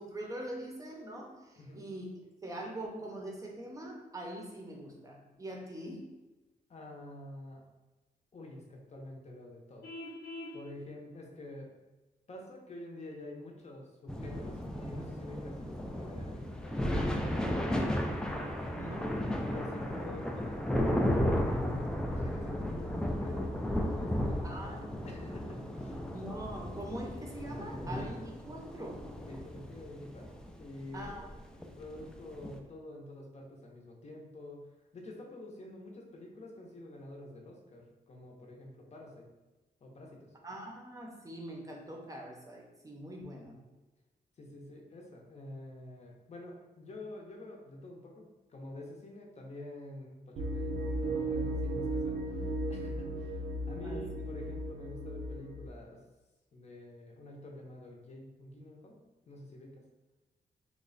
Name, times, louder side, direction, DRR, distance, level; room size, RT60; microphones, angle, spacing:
voice 1, 0.0-2.1 2.4-6.1 18.7-19.2 24.4-25.1 26.1-29.0 30.9-31.3 40.4-43.6 53.8-54.0, right 1 dB, 20° right, 0 dB, 0.7 m, -43 dB
voice 2, 6.7-7.6 8.3-9.8 10.5-11.7 12.3-16.9 19.3-21.8 22.1-24.6 25.0-26.0 29.3-31.3 31.6-34.7 34.9-39.3 39.8-40.3 44.4-56.0 56.5-59.0 59.3-59.8, left 1 dB, 45° left, 0 dB, 0.7 m, -48 dB
Vehicle horn car horn honking, 9.8-10.6, left 1 dB, 80° left, 0.7 m, -43 dB
sound 1, 14.1-32.6, equal, 5° left, 0.3 m, -34 dB
sound 2, 50.4-55.7, right 1 dB, 75° right, 0.5 m, -35 dB
3.1 x 2.2 x 3.8 m, 1.1 s
wide cardioid pair, 110°, 16 cm